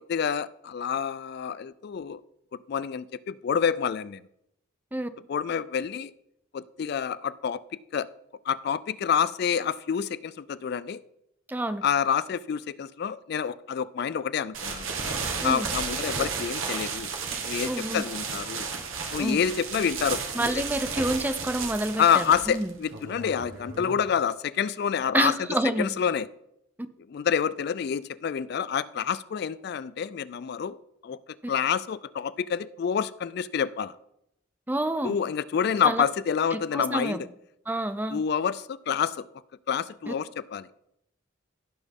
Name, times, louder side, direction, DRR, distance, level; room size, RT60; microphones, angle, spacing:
voice 1, 0.0-2.2 2.7-4.2 5.3-6.1 6.5-7.6 7.9-8.1 8.5-11.0 11.8-14.9 15.4-17.1 17.5-18.7 19.1-20.6 22.0-25.3 25.8-26.3 27.1-30.8 31.0-31.2 31.5-33.9 35.0-37.3 38.1-39.3 39.7-40.7, left 7 dB, 50° left, 17 dB, 0.3 m, -28 dB
voice 2, 11.5-11.8 15.4-15.7 17.7-18.0 19.2-19.4 20.3-22.7 25.1-25.9 34.7-35.1 35.8-36.0 36.5-37.2 37.7-38.2 40.1-40.2, right 1 dB, 10° right, 11 dB, 0.5 m, -28 dB
sound 1, 14.5-24.1, right 5 dB, 80° right, 1.6 m, -33 dB
16.0 x 6.1 x 3.6 m, 0.79 s
head